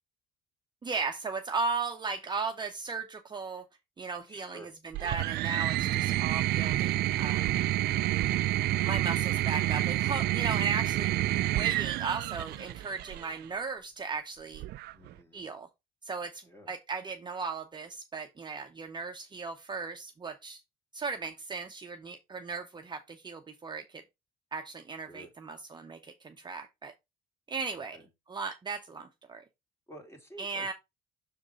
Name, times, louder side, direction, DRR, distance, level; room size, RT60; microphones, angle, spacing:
voice 1, 0.8-3.6 4.0-7.6 8.8-11.2 11.5-14.6 15.3-15.7 16.1-20.6 20.9-24.0 24.5-26.9 27.5-28.0 28.3-29.4 30.4-30.7, right 4 dB, 25° right, 0.9 m, -36 dB
voice 2, 4.3-4.7 14.9-15.4 16.5-16.7 25.1-25.3 27.7-28.1 29.9-30.7, right 1 dB, 15° left, 2.4 m, -50 dB
sound 1, 4.9-13.3 14.5-15.2, right 15 dB, 70° right, 0.4 m, -29 dB
6.6 x 3.7 x 5.0 m
cardioid pair, 110°, 17 cm